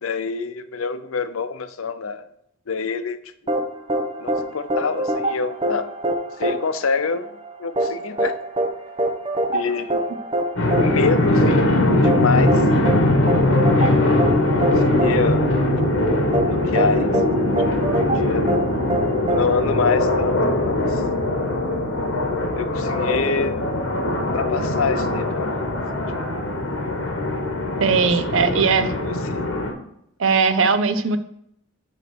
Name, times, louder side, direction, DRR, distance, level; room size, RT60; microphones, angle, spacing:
voice 1, 0.0-2.3 2.7-3.2 3.4-3.5 4.2-5.9 6.4-7.3 7.6-8.4 9.5-10.0 10.8-11.7 12.0-12.6 13.7-14.0 14.8-15.5 16.4-17.2 17.8-18.5 19.3-21.0 22.6-23.6 24.3-25.6 28.4-29.4, left 5 dB, 80° left, 11 dB, 0.6 m, -26 dB
sound 1, 3.5-20.3, right 1 dB, 25° right, 0.9 m, -25 dB
sound 2, 10.6-29.7, left 1 dB, 60° left, 1.3 m, -21 dB
voice 2, 27.8-28.9 30.2-31.2, right 5 dB, 70° right, 11 dB, 0.6 m, -19 dB
8.0 x 3.1 x 6.1 m, 0.74 s
head